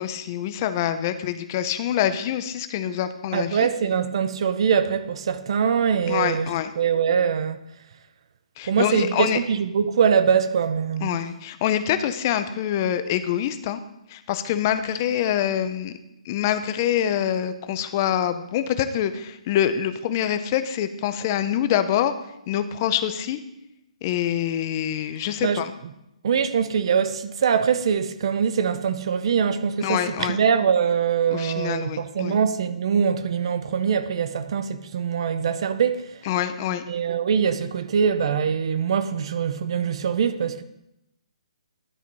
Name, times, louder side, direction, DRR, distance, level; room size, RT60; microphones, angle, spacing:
voice 1, 0.0-3.7 6.1-6.7 8.6-9.4 11.0-13.8 14.1-15.9 16.3-22.1 22.5-23.4 24.0-25.7 29.8-30.4 31.3-32.4 36.2-36.8, left 10 dB, 25° left, 0.4 m, -25 dB
voice 2, 3.3-6.5 6.8-7.6 8.7-11.2 25.4-25.6 26.2-36.0 36.9-40.6, right 7 dB, 45° right, 0.5 m, -23 dB
11.0 x 4.0 x 4.5 m
hypercardioid pair, 165°, 4 cm